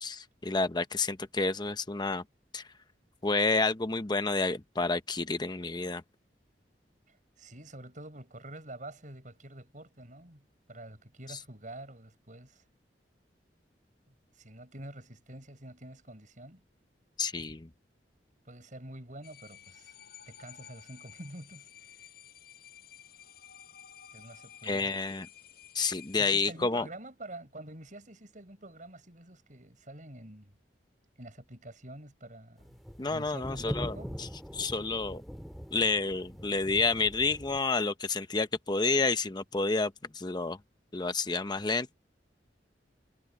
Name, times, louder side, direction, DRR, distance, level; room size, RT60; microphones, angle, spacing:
voice 1, 0.0-2.2 2.5-2.6 3.2-6.0 11.3-11.4 17.2-17.7 24.6-25.3 25.7-26.9 33.0-34.3 34.5-35.2 35.7-40.6 40.9-41.9, left 3 dB, 25° left, 0.8 m, -29 dB
voice 2, 7.1-12.7 14.1-16.6 18.4-19.9 20.3-22.1 24.1-24.9 26.1-30.6 31.2-32.8 33.1-34.2, right 1 dB, 45° right, 7.7 m, -47 dB
sound 1, 19.2-26.2, left 10 dB, 60° left, 7.4 m, -53 dB
sound 2, 32.6-37.6, equal, ahead, 2.3 m, -42 dB
head